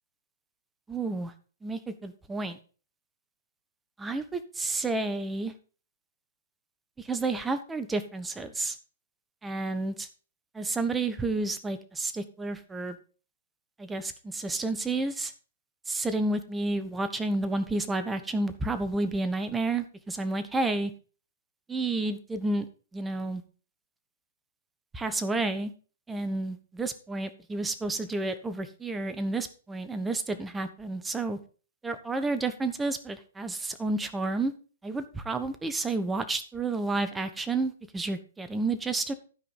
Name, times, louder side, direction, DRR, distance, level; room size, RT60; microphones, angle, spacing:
voice 1, 0.9-1.3 1.6-2.6 4.0-5.5 7.0-8.8 9.4-10.1 10.5-13.0 13.8-15.3 15.9-20.9 21.7-22.7 22.9-23.4 24.9-25.7 26.1-31.4 31.8-34.5 34.8-39.1, right 2 dB, 10° right, 11 dB, 1.1 m, -30 dB
12.0 x 5.0 x 5.5 m, 0.38 s
hypercardioid pair, 125°, 0 cm